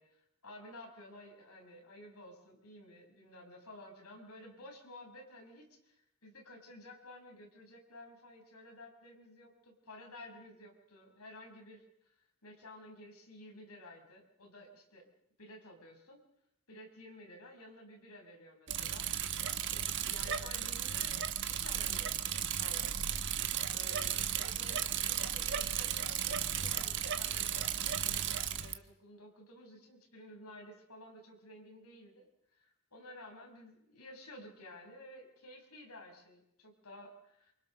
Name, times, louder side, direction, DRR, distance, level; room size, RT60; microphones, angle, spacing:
voice 1, 0.0-12.1 12.4-15.1 15.4-16.2 16.7-19.1 19.7-23.4 23.7-32.3 32.5-37.5, left 1 dB, 85° left, 2 dB, 6.1 m, -53 dB
Bicycle, 18.7-28.7, right 9 dB, 55° right, 1.3 m, -35 dB
28.0 x 25.5 x 6.5 m, 0.78 s
head